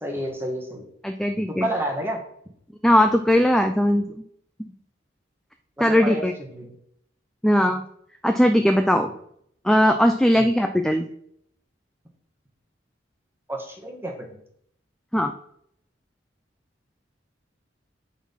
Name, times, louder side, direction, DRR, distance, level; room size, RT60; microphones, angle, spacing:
voice 1, 0.0-0.9 1.6-2.2 5.8-6.7 10.3-10.4 13.5-14.1, right 1 dB, 10° right, 1 dB, 1.5 m, -30 dB
voice 2, 1.0-1.7 2.8-4.2 4.6-4.7 5.8-6.3 7.4-7.8 8.2-9.1 9.6-11.1 15.1-15.3, equal, 5° left, 6 dB, 0.4 m, -19 dB
8.5 x 4.1 x 5.5 m, 0.69 s
head